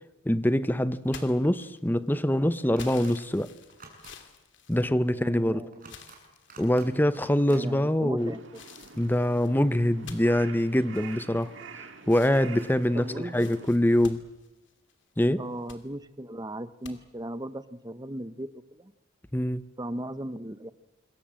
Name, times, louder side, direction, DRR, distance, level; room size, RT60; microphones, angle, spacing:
voice 1, 0.3-3.5 4.7-5.6 6.6-8.3 8.9-11.5 12.1-14.2 15.2-15.4 19.3-19.6, left 1 dB, 10° left, 0.8 m, -24 dB
sound 1, 1.1-2.1 2.8-5.4 5.8-6.9 7.5-7.9 8.5-11.7 12.0-15.0 15.4-15.8 16.8-17.0, left 5 dB, 65° left, 2.8 m, -50 dB
sound 2, 2.8-3.1 3.7-4.1 5.7-6.2 6.5-6.9 7.1-7.6, right 4 dB, 45° right, 6.2 m, -49 dB
voice 2, 5.0-5.9 7.5-8.6 12.9-13.5 15.4-18.9 19.8-20.7, right 1 dB, 20° right, 0.9 m, -37 dB
Crow, 8.2-13.7, right 5 dB, 65° right, 2.1 m, -47 dB
27.0 x 22.5 x 7.7 m
head